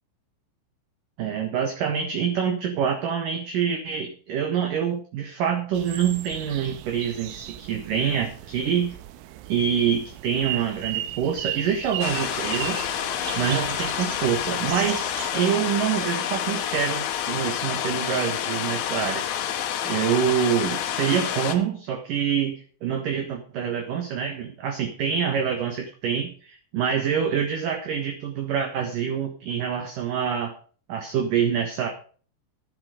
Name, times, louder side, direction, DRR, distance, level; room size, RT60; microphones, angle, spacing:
voice 1, 1.2-9.0 9.5-12.9 13.3-19.2 19.8-30.5 30.9-31.9, right 8 dB, 60° right, 3 dB, 2.3 m, -26 dB
sound 1, 5.7-15.3, right 13 dB, 85° right, 3.4 m, -36 dB
sound 2, 12.0-21.6, left 10 dB, 75° left, 3.5 m, -28 dB
11.0 x 10.5 x 5.0 m, 0.41 s
omnidirectional pair, 5.7 m